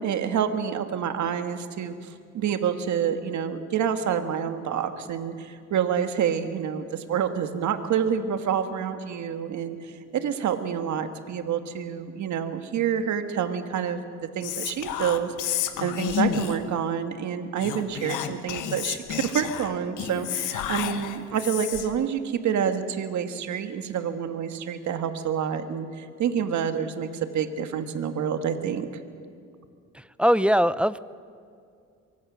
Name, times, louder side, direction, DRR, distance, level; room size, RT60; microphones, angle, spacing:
voice 1, 0.0-14.0 14.4-27.1 27.3-28.9, right 8 dB, 70° right, 8 dB, 1.7 m, -28 dB
Whispering, 14.4-16.7 17.6-22.0, left 10 dB, 85° left, 1.5 m, -31 dB
voice 2, 29.9-31.0, equal, 5° right, 16 dB, 0.5 m, -21 dB
24.5 x 23.5 x 6.3 m, 2.3 s
cardioid pair, 90°, 30 cm